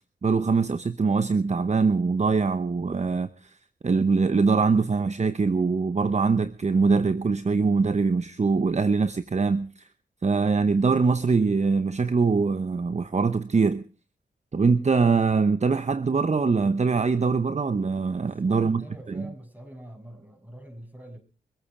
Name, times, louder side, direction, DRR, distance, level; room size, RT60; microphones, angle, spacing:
voice 1, 0.2-3.3 3.8-9.9 10.2-13.8 14.5-19.2, right 4 dB, 40° right, 0.9 m, -23 dB
voice 2, 18.1-21.2, right 1 dB, 10° right, 6.9 m, -45 dB
24.0 x 9.0 x 4.9 m
supercardioid pair, 45°, 19 cm